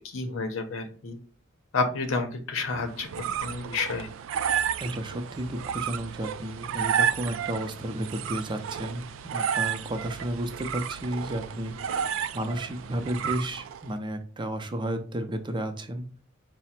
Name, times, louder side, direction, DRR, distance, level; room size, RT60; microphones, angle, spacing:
voice 1, 0.1-1.2 1.7-4.1, left 3 dB, 85° left, 4 dB, 0.7 m, -30 dB
sound 1, 2.8-13.9, right 8 dB, 75° right, 0.3 m, -32 dB
voice 2, 4.8-16.1, right 1 dB, 25° right, 6 dB, 0.5 m, -32 dB
4.8 x 2.1 x 4.2 m, 0.40 s
head